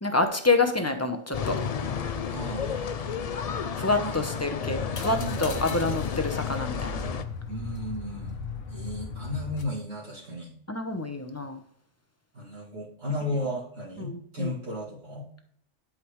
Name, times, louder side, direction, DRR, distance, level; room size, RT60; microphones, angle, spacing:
voice 1, 0.0-1.6 3.8-7.0 10.7-11.6 14.0-14.5, left 3 dB, 15° left, 6 dB, 0.8 m, -27 dB
sound 1, 1.3-7.2, left 6 dB, 55° left, 0.4 m, -32 dB
voice 2, 2.3-2.9 4.0-4.3 5.1-5.8 7.5-8.3 8.7-10.5 12.3-15.2, left 1 dB, 60° right, -7 dB, 3.0 m, -34 dB
sound 2, 4.6-9.6, left 5 dB, 85° left, 1.4 m, -36 dB
11.5 x 5.1 x 3.2 m, 0.64 s
omnidirectional pair, 1.3 m